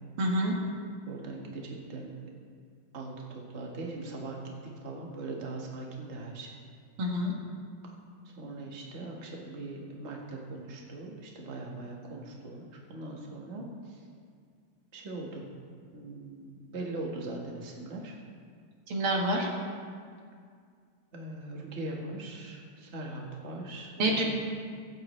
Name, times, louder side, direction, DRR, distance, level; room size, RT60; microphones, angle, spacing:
voice 1, 0.2-0.6 7.0-7.4 18.9-19.5 24.0-24.2, right 1 dB, 80° right, -2 dB, 2.7 m, -27 dB
voice 2, 1.0-2.1 2.9-4.4 4.8-6.5 8.2-14.0 14.9-15.4 15.9-18.2 21.1-24.2, right 2 dB, 35° right, -1 dB, 1.7 m, -40 dB
23.5 x 8.6 x 3.2 m, 2.1 s
omnidirectional pair, 2.4 m